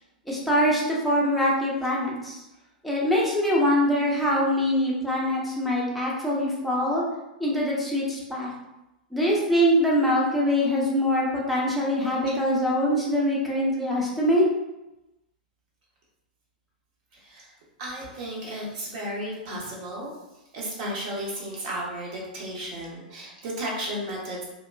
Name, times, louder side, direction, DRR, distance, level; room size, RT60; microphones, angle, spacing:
voice 1, 0.3-2.3 2.8-7.0 7.4-8.5 9.1-14.5, equal, ahead, -6 dB, 0.7 m, -23 dB
voice 2, 17.1-17.5 17.8-20.1 20.5-24.4, right 1 dB, 50° right, -4 dB, 0.9 m, -34 dB
2.9 x 2.2 x 2.2 m, 0.95 s
figure-of-eight pair, 100°, 5 cm